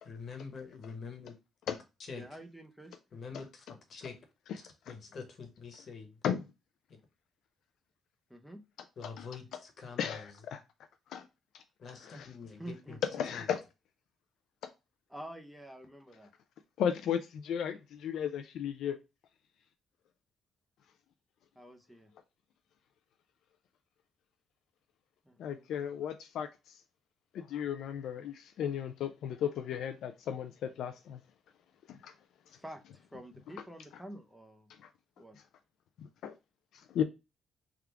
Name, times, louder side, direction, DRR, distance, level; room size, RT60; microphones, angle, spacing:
voice 1, 0.0-1.4 1.7-1.8 2.0-2.2 3.1-4.2 4.5-6.2 6.9-7.0 9.0-10.3 11.8-13.6, left 5 dB, 55° left, 1.1 m, -46 dB
voice 2, 2.1-3.0 8.3-8.6 12.6-13.0 15.1-16.3 21.6-22.1 25.3-25.7 32.6-34.7 35.2-35.4, right 1 dB, ahead, 0.6 m, -48 dB
voice 3, 10.0-10.6 11.1-11.3 11.5-11.6 12.1-12.3 13.0-13.6 16.8-19.0 25.4-26.8 27.3-31.2 31.9-32.1 34.8-34.9 36.0-36.3 36.9-37.0, left 9 dB, 75° left, 0.3 m, -35 dB
3.5 x 2.4 x 4.5 m
cardioid pair, 90°, 0 cm